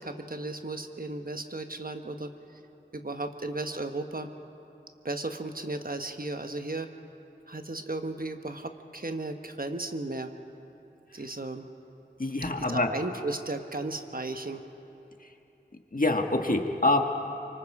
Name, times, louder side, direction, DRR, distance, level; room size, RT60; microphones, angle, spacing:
voice 1, 0.0-2.3 2.9-4.3 5.0-6.9 7.5-10.3 11.1-11.7 12.7-14.6, right 2 dB, 50° right, 6 dB, 1.2 m, -35 dB
voice 2, 12.2-12.9 15.9-17.0, left 2 dB, 45° left, 4 dB, 1.5 m, -25 dB
25.5 x 24.5 x 4.9 m, 2.9 s
wide cardioid pair, 45°, 19 cm